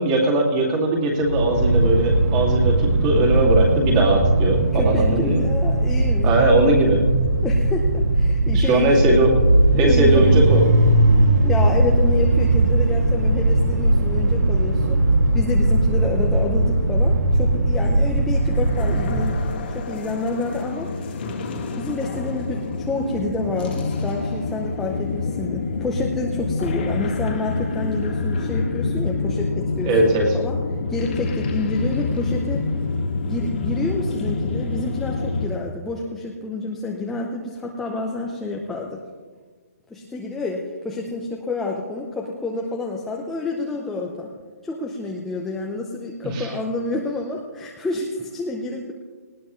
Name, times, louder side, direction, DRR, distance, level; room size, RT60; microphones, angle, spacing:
voice 1, 0.0-5.4 6.2-7.0 8.5-9.3 9.7-10.6 29.8-30.4 46.3-46.5, right 2 dB, 20° right, 0 dB, 2.2 m, -19 dB
sound 1, 1.2-19.6, right 2 dB, 85° right, 2.3 m, -19 dB
voice 2, 4.7-6.3 7.4-9.0 9.8-10.2 11.4-15.0 15.3-19.4 19.7-20.9 21.8-30.6 30.9-32.7 33.3-39.0 39.9-44.3 44.6-48.9, left 3 dB, 5° left, -1 dB, 0.6 m, -28 dB
sound 2, 18.3-35.5, left 3 dB, 35° left, 1.7 m, -27 dB
19.0 x 17.0 x 3.1 m, 1.4 s
hypercardioid pair, 170°, 9 cm